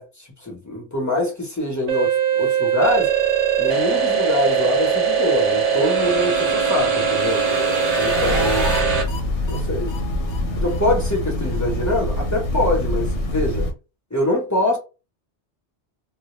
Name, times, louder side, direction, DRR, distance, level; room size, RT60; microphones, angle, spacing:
voice 1, 0.0-3.1 3.6-7.4 8.0-8.8 9.4-9.9 10.6-13.7 14.1-14.8, left 1 dB, 15° left, 0.8 m, -24 dB
sound 1, 1.9-9.0, right 6 dB, 40° right, 0.6 m, -20 dB
sound 2, 6.8-8.8 9.1-9.2 9.5-9.6 9.9-10.0 10.3-10.4 10.7-10.8 11.1-11.2 11.5-11.6 11.9-12.0, left 3 dB, 55° left, 0.7 m, -34 dB
Train, 8.0-13.7, left 1 dB, 80° left, 1.0 m, -25 dB
2.2 x 2.1 x 3.0 m
omnidirectional pair, 1.2 m